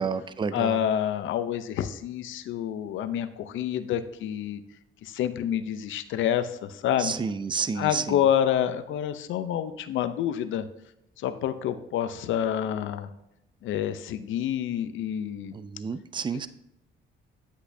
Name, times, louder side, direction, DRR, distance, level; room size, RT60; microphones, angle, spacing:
voice 1, 0.0-0.8 7.0-8.2 15.5-16.5, right 5 dB, 25° right, 14 dB, 0.4 m, -30 dB
voice 2, 0.5-4.6 5.0-7.1 7.8-10.7 11.2-13.1 13.6-15.5, left 10 dB, 80° left, 10 dB, 0.6 m, -28 dB
8.3 x 8.0 x 2.7 m, 0.81 s
cardioid pair, 90°, 20 cm